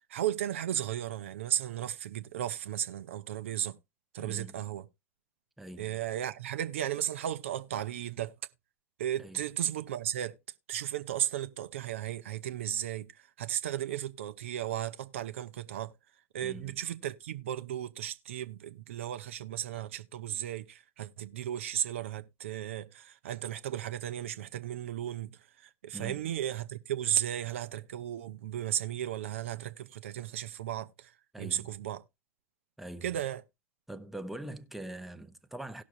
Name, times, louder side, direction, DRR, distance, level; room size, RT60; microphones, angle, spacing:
voice 1, 0.1-3.7 4.1-4.9 5.8-8.3 9.0-10.3 10.7-13.1 13.4-15.9 16.3-31.1 31.4-32.0 33.0-33.4, right 11 dB, 60° right, 0.6 m, -35 dB
voice 2, 4.2-4.6 5.6-6.0 9.2-9.4 16.4-16.8 25.9-26.3 31.3-31.7 32.8-33.2 33.9-35.8, right 1 dB, ahead, 0.7 m, -43 dB
17.5 x 6.1 x 2.6 m
figure-of-eight pair, 85°, 8 cm